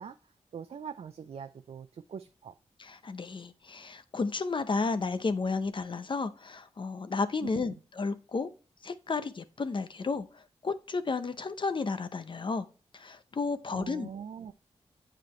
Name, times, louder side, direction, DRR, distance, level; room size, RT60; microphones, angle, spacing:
voice 1, 0.0-2.6 7.4-7.8 13.7-14.5, right 7 dB, 60° right, 10 dB, 0.4 m, -43 dB
voice 2, 2.8-8.5 8.8-12.7 12.9-14.1, left 4 dB, 45° left, 11 dB, 0.7 m, -32 dB
7.5 x 5.0 x 3.1 m, 0.36 s
cardioid pair, 60°, 12 cm